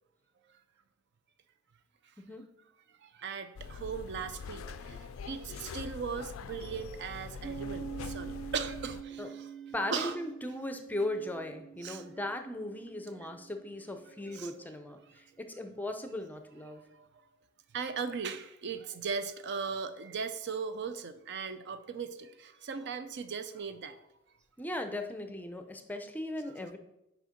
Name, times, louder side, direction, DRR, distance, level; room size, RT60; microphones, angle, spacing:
voice 1, 3.0-9.5 9.9-10.2 11.8-12.0 13.1-13.3 14.3-14.7 16.7-17.1 17.7-24.0, right 5 dB, 55° right, 10 dB, 0.5 m, -38 dB
sound 1, 3.6-9.0, left 6 dB, 75° left, 0.3 m, -44 dB
Piano, 7.4-14.7, right 8 dB, 40° right, 0.9 m, -46 dB
voice 2, 9.7-16.8 24.6-26.8, left 1 dB, 10° left, 7 dB, 0.5 m, -38 dB
6.4 x 4.9 x 5.1 m, 0.88 s
head